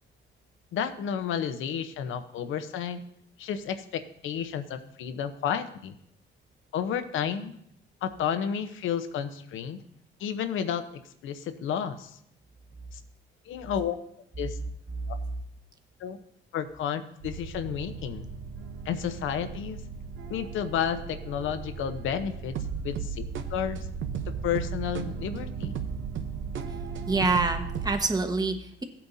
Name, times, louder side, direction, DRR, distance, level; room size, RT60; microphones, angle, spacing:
voice 1, 0.7-3.0 3.4-5.9 6.7-7.6 8.0-9.8 10.2-12.2 12.9-13.0 13.5-14.0 14.4-14.6 16.0-16.2 16.5-18.3 18.8-19.8 20.3-22.6 22.8-23.2 23.5-23.9 24.4-25.7, left 8 dB, 80° left, 9 dB, 0.9 m, -31 dB
sound 1, 17.2-28.0, right 6 dB, 75° right, 0.9 m, -36 dB
voice 2, 27.1-28.8, right 3 dB, 20° right, 6 dB, 1.3 m, -26 dB
16.0 x 8.6 x 2.7 m, 0.72 s
cardioid pair, 90°, 20 cm